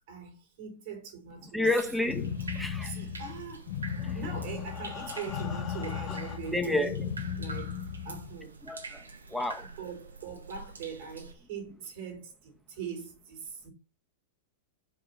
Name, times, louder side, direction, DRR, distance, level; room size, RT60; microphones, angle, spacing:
voice 1, 0.1-1.7 2.8-3.7 4.1-7.0 7.4-7.8 8.0-8.6 9.8-13.7, right 6 dB, 60° right, 4.0 m, -41 dB
voice 2, 1.4-3.0 4.0-4.2 6.5-7.0 8.6-9.0 9.3-9.7, left 2 dB, ahead, 1.5 m, -30 dB
sound 1, 1.6-11.3, right 4 dB, 80° right, 1.2 m, -46 dB
sound 2, 2.1-8.4, left 8 dB, 60° left, 1.2 m, -36 dB
Breathing, 3.8-6.7 7.5-7.6 7.9-8.0 8.5-8.6, left 7 dB, 35° left, 1.8 m, -44 dB
6.5 x 4.8 x 5.7 m
figure-of-eight pair, 100°, 0 cm